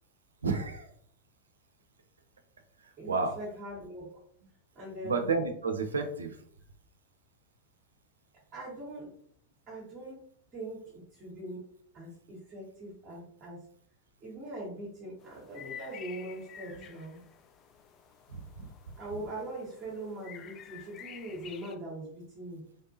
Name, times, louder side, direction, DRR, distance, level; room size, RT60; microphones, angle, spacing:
voice 1, 0.4-0.9 2.8-3.4 5.0-6.4 16.7-16.9 18.3-18.7 19.9-20.1, right 4 dB, 70° right, 5 dB, 0.6 m, -32 dB
voice 2, 3.0-4.1 4.7-5.3 8.5-9.1 9.7-10.2 10.5-11.6 11.9-13.6 14.2-17.2 19.0-22.6, right 1 dB, 30° right, -6 dB, 1.7 m, -41 dB
sound 1, 15.2-21.7, left 9 dB, 30° left, 0.4 m, -50 dB
3.7 x 3.5 x 2.8 m, 0.62 s
figure-of-eight pair, 90°, 0 cm